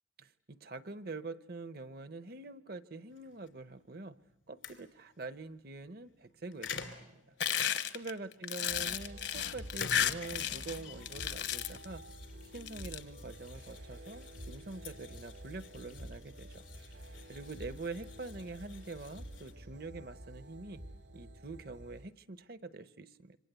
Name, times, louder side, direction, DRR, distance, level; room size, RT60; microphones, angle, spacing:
voice 1, 0.2-4.2 4.5-7.3 7.9-12.0 12.5-16.6 17.3-20.8 21.1-23.4, right 3 dB, 50° right, 13 dB, 0.9 m, -45 dB
sound 1, 3.1-19.5, left 6 dB, 85° left, 2.9 m, -50 dB
sound 2, 7.4-10.8 11.1-11.8 12.5-13.0, left 9 dB, 65° left, 1.1 m, -33 dB
sound 3, 8.7-22.1, right 1 dB, 80° right, 3.1 m, -50 dB
27.0 x 25.0 x 8.2 m, 0.86 s
head